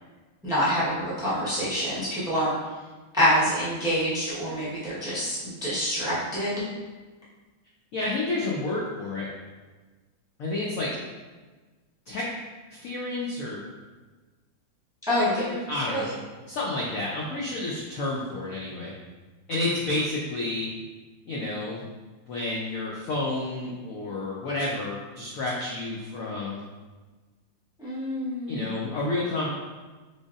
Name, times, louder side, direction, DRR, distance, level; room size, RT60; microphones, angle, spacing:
voice 1, 0.4-2.5 3.1-6.6 15.1-15.5 15.9-16.1 27.8-28.8, equal, 5° right, -9 dB, 0.6 m, -26 dB
voice 2, 7.9-9.3 10.4-10.9 12.1-12.2 12.7-13.6 15.2-16.0 16.5-18.9 19.5-20.7 21.2-21.8 22.3-26.6 28.5-29.5, left 2 dB, 75° left, -4 dB, 0.8 m, -30 dB
4.1 x 3.3 x 2.4 m, 1.3 s
omnidirectional pair, 2.0 m